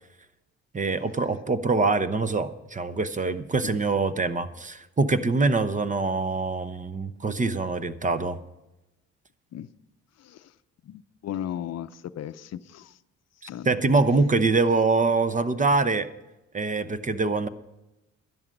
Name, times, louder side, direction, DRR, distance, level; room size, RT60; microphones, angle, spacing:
voice 1, 0.7-8.4 13.6-16.1 16.5-17.5, right 3 dB, 25° right, 13 dB, 0.9 m, -24 dB
voice 2, 10.2-10.5 10.8-13.0 13.5-13.7, left 10 dB, 60° left, 12 dB, 0.6 m, -36 dB
12.5 x 11.0 x 5.2 m, 0.95 s
cardioid pair, 90°, 30 cm